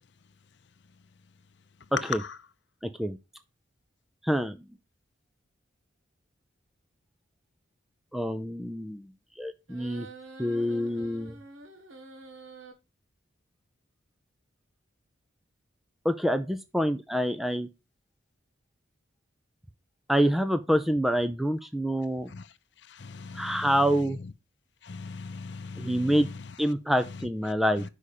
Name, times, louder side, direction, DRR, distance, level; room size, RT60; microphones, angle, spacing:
voice 1, 2.8-3.2 4.2-4.6 8.1-9.1 9.4-10.1 10.4-11.4 16.0-17.7 20.1-22.3 23.3-24.2 25.8-26.3 26.6-27.8, equal, ahead, 0.4 m, -26 dB
sound 1, 9.7-12.7, right 3 dB, 85° right, 1.7 m, -47 dB
voice 2, 23.0-23.7 24.8-26.2, left 4 dB, 60° left, 0.6 m, -40 dB
5.6 x 4.9 x 6.5 m
head